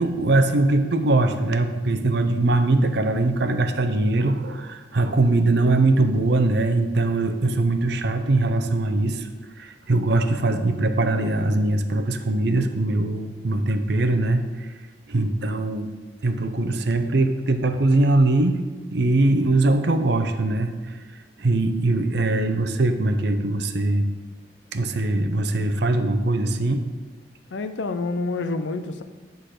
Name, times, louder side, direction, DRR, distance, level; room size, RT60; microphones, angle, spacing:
voice 1, 0.0-9.3 9.6-14.7 15.1-15.9 16.2-18.6 18.9-20.9 21.4-24.1 24.7-26.8, right 2 dB, 65° right, 8 dB, 0.7 m, -21 dB
voice 2, 27.5-29.0, left 3 dB, 75° left, 9 dB, 0.6 m, -28 dB
10.0 x 4.0 x 6.5 m, 1.2 s
head